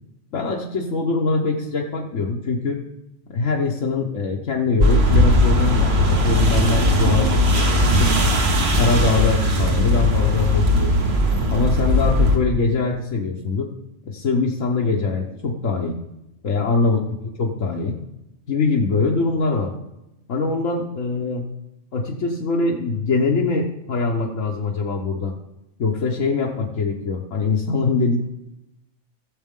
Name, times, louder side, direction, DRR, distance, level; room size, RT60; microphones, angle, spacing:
voice 1, 0.3-2.8 3.3-8.1 8.7-11.1 11.5-13.7 14.1-16.0 16.4-17.0 17.4-18.0 18.5-19.7 20.3-21.5 21.9-25.3 25.8-28.3, left 4 dB, 85° left, -3 dB, 1.5 m, -23 dB
sound 1, 4.8-12.4, left 1 dB, 55° right, 1.6 m, -18 dB
16.5 x 7.5 x 3.7 m, 0.89 s
omnidirectional pair, 1.3 m